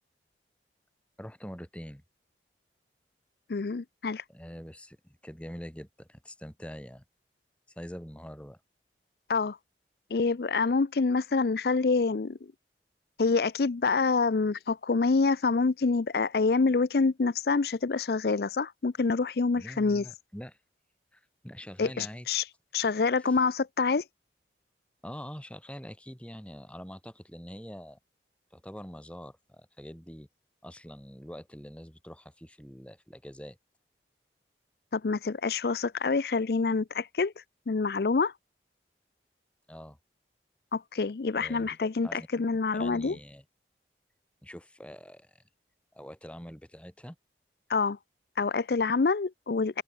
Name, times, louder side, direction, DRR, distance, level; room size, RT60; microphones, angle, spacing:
voice 1, 1.2-2.0 4.3-7.0 7.8-8.6 19.6-20.6 21.1-22.3 23.3-23.4 25.0-28.0 28.5-30.3 30.6-33.6 39.7-40.0 41.4-41.7 42.0-42.3 42.7-43.4 44.4-45.4 45.9-47.2, equal, 5° left, 2.3 m, -44 dB
voice 2, 3.5-4.2 9.3-9.6 10.1-12.4 13.2-20.1 21.8-22.5 22.7-24.0 34.9-37.3 37.7-38.3 40.7-43.2 47.7-48.0 48.4-49.8, left 4 dB, 60° left, 0.5 m, -26 dB
open air
head